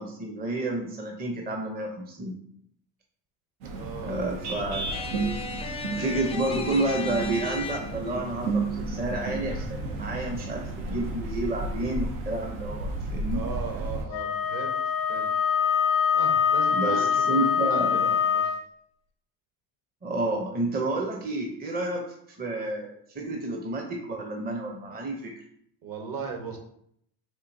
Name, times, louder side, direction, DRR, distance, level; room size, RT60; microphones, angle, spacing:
voice 1, 0.0-2.4 4.0-5.1 6.0-13.5 16.7-18.0 20.0-25.3, right 2 dB, 20° right, 2 dB, 0.6 m, -30 dB
sound 1, 3.6-14.0, right 2 dB, 85° right, 0.8 m, -33 dB
voice 2, 3.7-4.2 13.3-14.7 15.1-15.3 16.1-18.5 25.8-26.6, right 5 dB, 50° right, 2 dB, 1.2 m, -37 dB
sound 2, 4.9-8.2, left 4 dB, 15° left, 0.3 m, -36 dB
Wind instrument woodwind instrument, 14.1-18.6, left 7 dB, 90° left, 0.7 m, -24 dB
4.4 x 2.6 x 2.6 m, 0.68 s
supercardioid pair, 75°, 45 cm